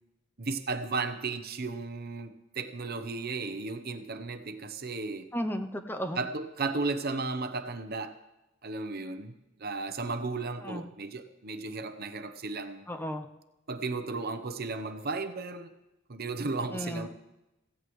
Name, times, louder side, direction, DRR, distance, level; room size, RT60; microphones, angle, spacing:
voice 1, 0.4-5.3 6.2-8.2 8.6-9.3 9.6-12.9 13.7-15.7 16.1-17.1, right 3 dB, 50° right, 9 dB, 0.9 m, -34 dB
voice 2, 5.3-6.2 10.6-10.8 12.9-13.3 16.7-17.1, equal, 10° left, 6 dB, 0.6 m, -34 dB
16.0 x 15.5 x 3.2 m, 0.96 s
head